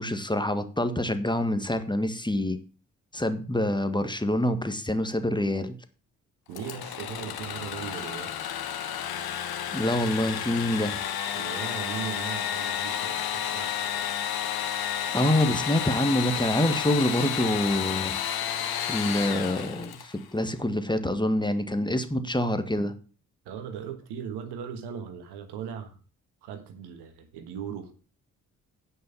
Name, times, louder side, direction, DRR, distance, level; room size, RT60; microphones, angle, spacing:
voice 1, 0.0-2.6 3.1-5.7 9.7-11.0 15.1-18.1 18.8-22.9, left 1 dB, 10° left, 1.6 m, -26 dB
Engine / Sawing, 6.5-20.2, left 9 dB, 65° left, 1.4 m, -31 dB
voice 2, 6.5-8.5 11.3-13.7 23.4-26.0 26.4-27.9, right 8 dB, 80° right, 1.5 m, -38 dB
9.4 x 5.6 x 6.9 m
hypercardioid pair, 40°, 40 cm